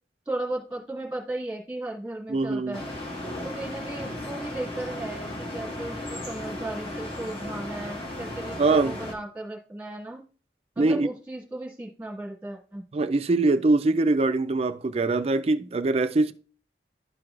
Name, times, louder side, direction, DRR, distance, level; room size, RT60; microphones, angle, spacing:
voice 1, 0.3-2.8 3.4-10.2 10.8-12.8, right 1 dB, 5° right, 2.0 m, -35 dB
voice 2, 2.3-2.8 8.6-9.0 10.8-11.1 12.9-16.3, right 3 dB, 35° right, 0.4 m, -23 dB
sound 1, 2.7-9.1, left 1 dB, 30° left, 1.5 m, -35 dB
12.5 x 4.6 x 2.5 m
head